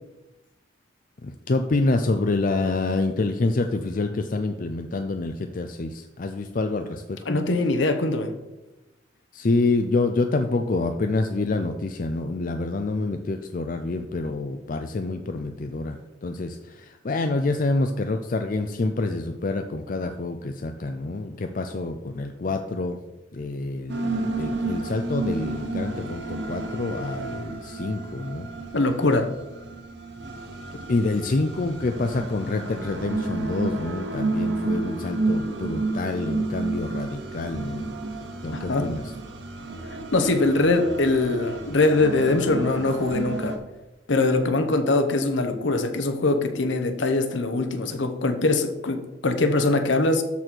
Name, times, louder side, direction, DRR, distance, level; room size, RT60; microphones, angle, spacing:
voice 1, 1.2-7.4 9.3-23.0 23.3-28.5 30.9-37.9 38.4-39.1, left 3 dB, 45° left, 6 dB, 0.5 m, -27 dB
voice 2, 7.3-8.3 28.7-29.3 38.5-38.8 40.1-43.6 44.1-50.2, left 2 dB, 70° left, 7 dB, 0.9 m, -22 dB
sound 1, 23.9-43.6, right 2 dB, 60° right, 1.1 m, -31 dB
13.0 x 4.3 x 4.5 m, 1.0 s
head